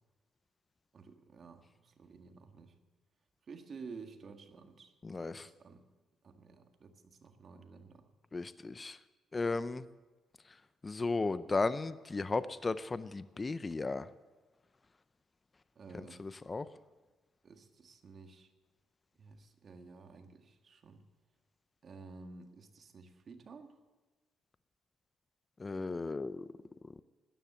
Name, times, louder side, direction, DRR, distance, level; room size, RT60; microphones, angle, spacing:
voice 1, 0.9-2.7 3.4-5.8 6.2-8.1 15.7-16.2 17.4-18.5 19.2-21.0 21.8-23.8, right 4 dB, 50° right, 6 dB, 1.7 m, -52 dB
voice 2, 5.0-5.5 8.3-9.0 9.3-9.8 10.8-14.1 16.2-16.7 25.6-26.5, left 3 dB, 25° left, 15 dB, 0.5 m, -35 dB
13.0 x 10.0 x 8.1 m, 1.2 s
cardioid pair, 90°, 0 cm